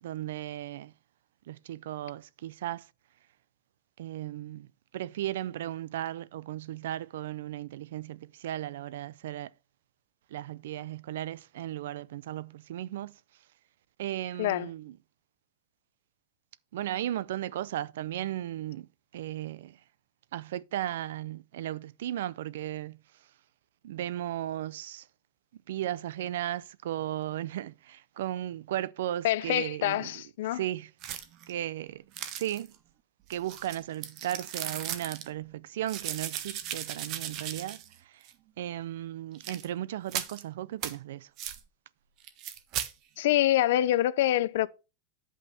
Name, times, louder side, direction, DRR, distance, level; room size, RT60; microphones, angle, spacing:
voice 1, 0.0-0.9 1.5-2.9 4.0-4.7 4.9-9.5 10.3-13.2 14.0-14.9 16.7-19.8 20.3-23.0 23.8-25.1 25.7-30.1 30.5-30.9 31.5-32.0 32.3-32.7 33.3-38.3 38.6-41.3, right 13 dB, 85° right, 0.4 m, -36 dB
voice 2, 29.2-30.6 43.2-44.7, left 13 dB, 65° left, 0.5 m, -26 dB
sound 1, 31.0-31.5 32.1-32.8 33.3-35.3 35.9-38.0 38.3-38.4 39.3-39.7 40.1-40.4 40.8-40.9 41.4-41.6 42.2-42.9, right 10 dB, 35° right, 0.7 m, -37 dB
9.6 x 5.5 x 4.1 m
supercardioid pair, 175°, 0 cm